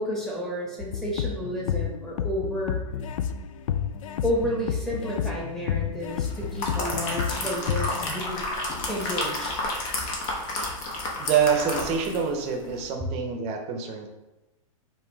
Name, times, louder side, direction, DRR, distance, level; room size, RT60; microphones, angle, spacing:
voice 1, 0.0-2.8 4.2-8.4 8.9-9.5, equal, ahead, -4 dB, 1.2 m, -31 dB
sound 1, 0.8-8.1, left 8 dB, 70° left, 0.4 m, -30 dB
sound 2, 6.3-12.3 12.6-12.8, left 2 dB, 45° left, 1.1 m, -31 dB
voice 2, 11.2-14.1, right 7 dB, 35° right, 4 dB, 0.7 m, -26 dB
4.8 x 2.8 x 3.4 m, 1.0 s
hypercardioid pair, 120°, 18 cm